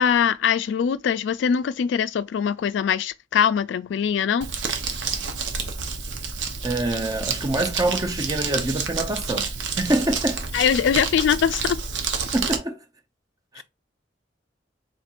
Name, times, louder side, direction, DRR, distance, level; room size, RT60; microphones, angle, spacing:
voice 1, 0.0-4.5 10.5-11.8 13.6-13.7, left 7 dB, 70° left, 0.3 m, -22 dB
Crumpling crinkling, 4.4-12.6, right 5 dB, 85° right, 0.8 m, -29 dB
voice 2, 6.6-9.5 9.8-10.4 12.3-12.8 13.5-13.6, right 2 dB, 20° right, 0.6 m, -25 dB
4.3 x 3.7 x 2.4 m
head